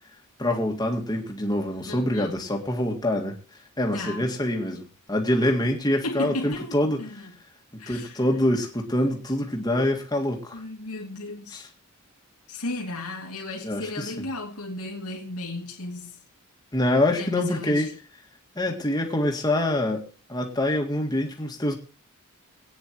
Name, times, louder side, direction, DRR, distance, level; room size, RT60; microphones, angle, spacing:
voice 1, 0.4-3.4 3.8-7.0 7.9-10.6 11.5-11.7 13.6-14.3 16.7-17.9 18.6-21.7, left 1 dB, 20° left, 2.0 m, -25 dB
voice 2, 1.9-2.3 3.9-4.3 6.0-7.3 7.8-8.2 10.5-11.6 12.5-16.2 17.1-17.9, left 2 dB, 90° left, 2.8 m, -35 dB
23.5 x 9.5 x 3.1 m
head